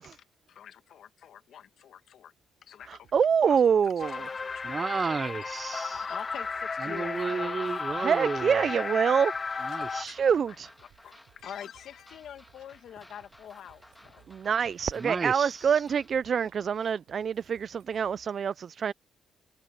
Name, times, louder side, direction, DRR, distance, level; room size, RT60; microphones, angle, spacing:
voice 1, 0.0-2.3 2.6-3.1 3.5-4.9 5.7-7.6 9.5-10.6 10.8-14.3 16.4-16.5, left 9 dB, 70° left, 1.7 m, -46 dB
sound 1, 2.8-18.3, right 12 dB, 80° right, 5.4 m, -63 dB
voice 2, 2.9-4.3 8.0-9.3 9.9-10.7 14.3-18.9, right 7 dB, 50° right, 0.4 m, -26 dB
sound 2, 4.0-10.0, left 4 dB, 35° left, 0.3 m, -34 dB
voice 3, 4.6-6.0 6.8-8.6 9.6-10.2 15.0-15.6, right 4 dB, 35° right, 0.8 m, -33 dB
sound 3, 5.5-16.1, left 1 dB, 10° left, 2.6 m, -57 dB
cardioid pair, 90°, 0 cm